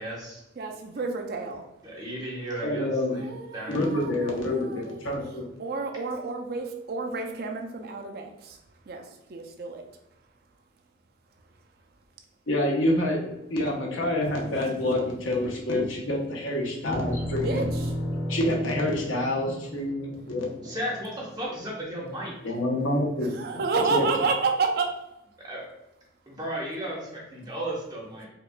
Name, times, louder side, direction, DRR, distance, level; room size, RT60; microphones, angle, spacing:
voice 1, 0.0-0.4 1.8-3.2 3.5-3.8 20.6-22.3 25.4-25.6 26.3-28.3, right 1 dB, 20° right, -4 dB, 0.8 m, -34 dB
voice 2, 0.6-1.6 3.1-5.0 5.6-8.6 8.9-9.0 9.3-9.8 17.3-17.9 23.3-24.9, right 4 dB, 50° right, 4 dB, 0.4 m, -30 dB
voice 3, 2.6-3.3 3.7-5.5 12.5-17.7 18.3-20.5 22.4-23.6 23.9-24.1, left 1 dB, 80° left, -1 dB, 0.8 m, -27 dB
sound 1, 16.8-21.3, equal, 45° left, 0.9 m, -33 dB
4.5 x 2.4 x 2.2 m, 0.88 s
head